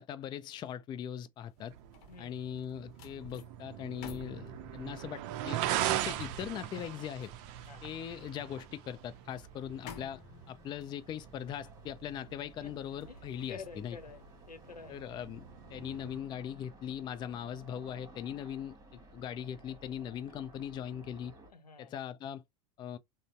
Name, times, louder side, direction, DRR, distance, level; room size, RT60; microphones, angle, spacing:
voice 1, 0.0-1.7 2.2-5.6 5.9-7.3 7.8-10.2 10.5-14.0 14.9-21.3 21.8-22.4 22.8-23.0, left 9 dB, 25° left, 0.3 m, -40 dB
sound 1, 1.4-14.8 15.2-15.4, left 5 dB, 50° left, 0.8 m, -55 dB
sound 2, 1.6-16.2, right 12 dB, 50° right, 0.5 m, -41 dB
sound 3, 7.2-21.5, right 1 dB, 20° right, 1.5 m, -57 dB
voice 2, 13.1-15.0 21.5-21.9, left 5 dB, 85° left, 0.7 m, -49 dB
3.8 x 2.0 x 3.2 m
figure-of-eight pair, 80°, 20 cm